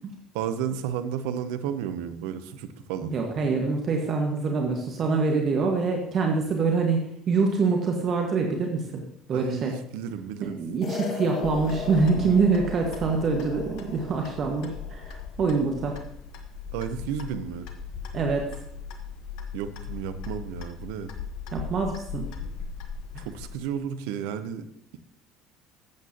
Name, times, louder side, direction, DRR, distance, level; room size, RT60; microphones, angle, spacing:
voice 1, 0.3-3.1 9.3-10.6 16.7-17.7 19.5-21.1 23.2-24.6, right 8 dB, 70° right, 10 dB, 0.7 m, -32 dB
voice 2, 3.0-7.0 7.3-9.0 9.3-9.7 10.4-16.0 18.1-18.5 21.5-22.3 23.1-23.2, right 4 dB, 45° right, 2 dB, 1.4 m, -25 dB
sound 1, 10.8-15.3, left 4 dB, 45° left, 1.6 m, -38 dB
Clock, 11.4-23.6, left 6 dB, 65° left, 1.1 m, -38 dB
13.0 x 8.2 x 2.9 m, 0.72 s
hypercardioid pair, 65°, 0 cm